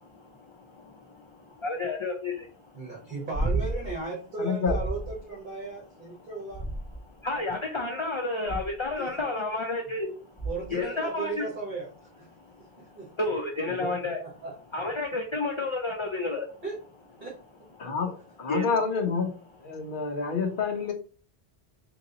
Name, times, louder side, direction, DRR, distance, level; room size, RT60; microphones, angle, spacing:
voice 1, 0.0-2.8 6.2-6.3 7.0-11.5 12.4-14.2 14.7-16.6 17.8-17.9 18.5-18.7 19.7-20.2, left 3 dB, 40° left, 2 dB, 0.5 m, -32 dB
voice 2, 2.7-6.6 9.0-9.2 10.4-11.9 12.2-12.3 12.8-13.1 14.0-14.5 16.6-16.7 17.2-17.3, right 3 dB, 50° right, -6 dB, 1.6 m, -36 dB
sound 1, 3.3-4.0 4.6-5.2 6.5-7.2 8.5-8.9 10.4-10.8 13.2-13.3, right 2 dB, 5° left, 2.1 m, -31 dB
voice 3, 4.4-4.8 13.7-13.9 17.8-18.1 18.4-19.3 19.6-20.9, left 5 dB, 55° left, 4 dB, 0.9 m, -28 dB
3.7 x 3.0 x 3.9 m, 0.39 s
omnidirectional pair, 1.1 m